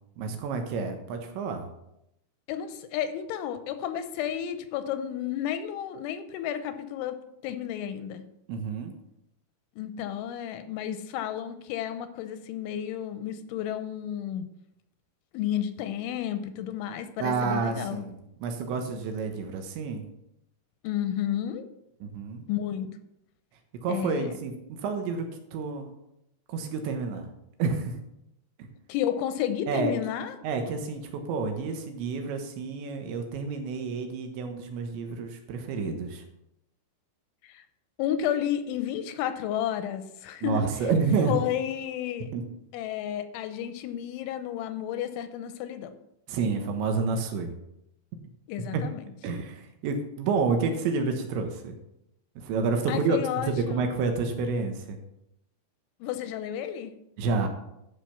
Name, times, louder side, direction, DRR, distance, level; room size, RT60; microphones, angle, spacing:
voice 1, 0.2-1.7 8.5-8.9 17.2-20.1 22.0-22.4 23.8-25.9 26.5-27.3 27.6-28.0 28.6-28.7 29.7-29.9 30.4-36.2 40.4-41.3 42.3-42.4 46.3-47.5 48.7-48.8 49.2-51.8 52.4-55.0 57.2-57.5, right 4 dB, 75° right, 5 dB, 3.2 m, -29 dB
voice 2, 2.5-7.2 7.4-8.2 9.8-14.4 15.3-18.0 20.8-21.7 22.5-22.9 23.9-24.3 28.9-30.4 37.4-37.6 38.0-40.6 41.3-42.3 42.7-46.0 48.5-49.0 52.9-53.9 56.0-56.9, left 10 dB, 85° left, 10 dB, 3.1 m, -32 dB
12.0 x 5.8 x 5.8 m, 0.83 s
omnidirectional pair, 5.6 m